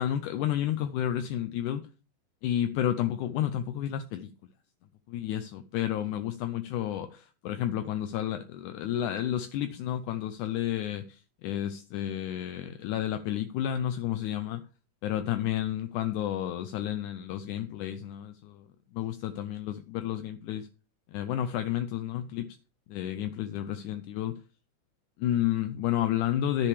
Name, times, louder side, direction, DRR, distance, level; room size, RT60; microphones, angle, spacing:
voice 1, 0.0-1.9 2.4-4.3 5.1-14.7 15.0-18.6 18.9-20.7 21.1-22.6 22.9-24.4 25.2-26.7, left 11 dB, 80° left, 2.0 m, -31 dB
10.0 x 9.9 x 3.3 m
omnidirectional pair, 3.8 m